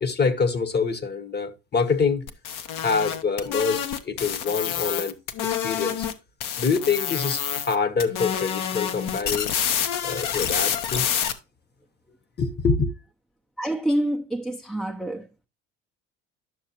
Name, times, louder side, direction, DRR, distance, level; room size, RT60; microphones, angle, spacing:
voice 1, 0.0-2.2 2.8-5.2 5.6-6.1 6.6-9.7 10.0-11.1 12.4-12.9, left 5 dB, 25° left, 1.0 m, -25 dB
sound 1, 2.3-6.1 6.4-11.3, left 8 dB, 60° left, 1.0 m, -28 dB
voice 2, 13.6-15.3, right 1 dB, ahead, 0.6 m, -27 dB
11.0 x 6.5 x 2.9 m
hypercardioid pair, 70°, 37 cm